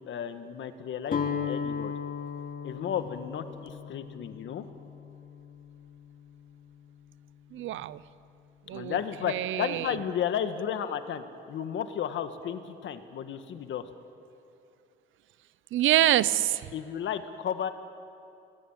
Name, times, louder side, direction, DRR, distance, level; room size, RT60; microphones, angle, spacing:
voice 1, 0.0-1.9 2.6-4.7 8.7-13.9 16.7-17.7, left 9 dB, 70° left, 9 dB, 1.7 m, -33 dB
Guitar, 1.1-7.1, left 6 dB, 45° left, 2.8 m, -37 dB
voice 2, 7.5-8.0 8.7-9.0 9.2-9.9 15.7-16.7, right 13 dB, 80° right, 17 dB, 0.8 m, -26 dB
26.5 x 20.5 x 9.1 m, 2.6 s
cardioid pair, 90°, 20 cm